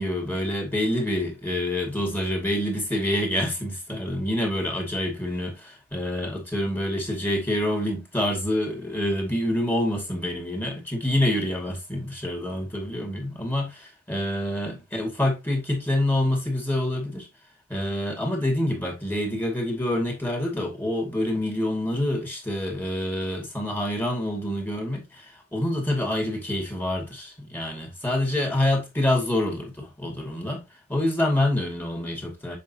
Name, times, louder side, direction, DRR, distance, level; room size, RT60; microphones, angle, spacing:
voice 1, 0.0-17.3 17.7-30.6 30.9-32.6, left 1 dB, 10° left, 2.3 m, -27 dB
7.4 x 5.4 x 2.9 m
head